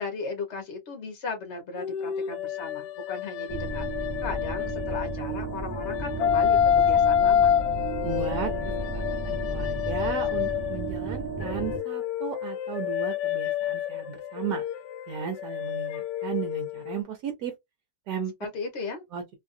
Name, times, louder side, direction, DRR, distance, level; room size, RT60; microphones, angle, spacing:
voice 1, 0.0-3.9 4.2-7.5 18.4-19.0, left 4 dB, 45° left, 1.2 m, -36 dB
sound 1, 1.8-5.3 5.8-11.0 11.4-17.0, left 9 dB, 75° left, 1.1 m, -27 dB
sound 2, 3.5-11.8, right 2 dB, 15° right, 1.1 m, -33 dB
voice 2, 8.0-14.6 15.1-17.5 18.1-18.3 19.1-19.2, right 7 dB, 65° right, 1.3 m, -35 dB
3.2 x 2.5 x 2.5 m
omnidirectional pair, 1.9 m